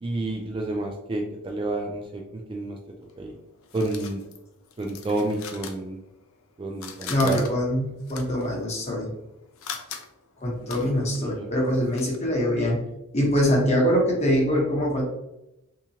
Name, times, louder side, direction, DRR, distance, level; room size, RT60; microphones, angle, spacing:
voice 1, 0.0-2.2 2.5-2.8 3.2-3.3 3.7-4.2 4.8-6.0 6.6-7.5 10.6-11.5, right 2 dB, 25° right, 1 dB, 0.3 m, -30 dB
sound 1, 3.0-6.4 6.7-12.2, left 7 dB, 70° left, 0.5 m, -41 dB
voice 2, 7.1-9.1 10.4-12.8 13.1-15.0, equal, 30° left, -3 dB, 1.0 m, -23 dB
3.6 x 2.8 x 2.8 m, 0.91 s
head